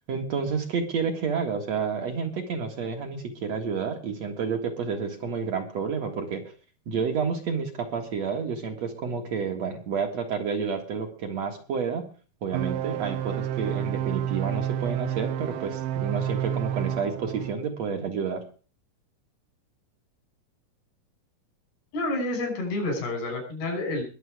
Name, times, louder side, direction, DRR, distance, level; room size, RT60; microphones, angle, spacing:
voice 1, 0.1-6.4 6.9-12.0 12.4-18.4, right 5 dB, 50° right, 4 dB, 2.6 m, -30 dB
sound 1, 12.5-17.6, right 10 dB, 75° right, 2.0 m, -29 dB
voice 2, 21.9-24.0, left 2 dB, 85° left, 3 dB, 7.7 m, -29 dB
21.5 x 7.7 x 4.9 m, 0.39 s
omnidirectional pair, 4.5 m